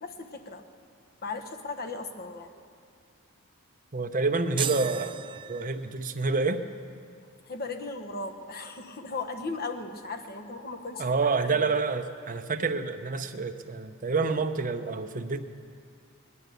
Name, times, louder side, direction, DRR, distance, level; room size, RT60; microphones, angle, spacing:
voice 1, 0.0-0.7 1.2-2.5 7.4-11.1 11.4-11.7, left 3 dB, 45° left, 5 dB, 1.1 m, -37 dB
voice 2, 3.9-5.2 5.5-6.6 11.0-15.4, right 4 dB, 40° right, 7 dB, 0.8 m, -28 dB
sound 1, 4.6-6.1, right 8 dB, 25° right, 0.4 m, -35 dB
19.0 x 11.0 x 6.8 m, 2.3 s
head